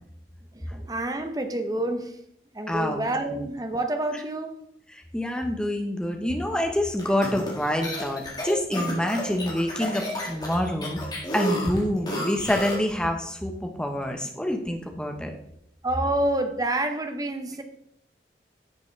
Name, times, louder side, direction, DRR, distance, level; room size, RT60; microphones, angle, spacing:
voice 1, 0.5-2.2 2.5-4.6 15.8-17.6, right 1 dB, 20° right, 0.8 m, -28 dB
voice 2, 2.7-3.0 3.3-3.5 5.1-11.0 11.3-15.3, left 1 dB, 5° left, 1.0 m, -27 dB
sound 1, 7.0-12.9, equal, 25° left, 1.9 m, -32 dB
11.0 x 7.1 x 3.3 m
head